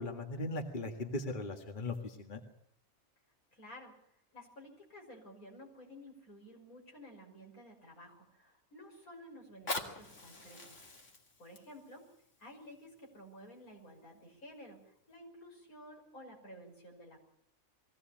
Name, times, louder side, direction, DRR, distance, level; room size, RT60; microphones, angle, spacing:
voice 1, 0.0-2.4, left 2 dB, 35° left, 4 dB, 2.0 m, -38 dB
voice 2, 3.5-4.0 4.3-10.9 11.4-12.0 12.4-17.2, equal, 75° left, 1 dB, 6.2 m, -53 dB
Fire, 9.4-14.4 15.0-15.1, left 3 dB, 55° left, 2.7 m, -45 dB
22.0 x 17.0 x 8.8 m, 0.72 s
omnidirectional pair, 1.5 m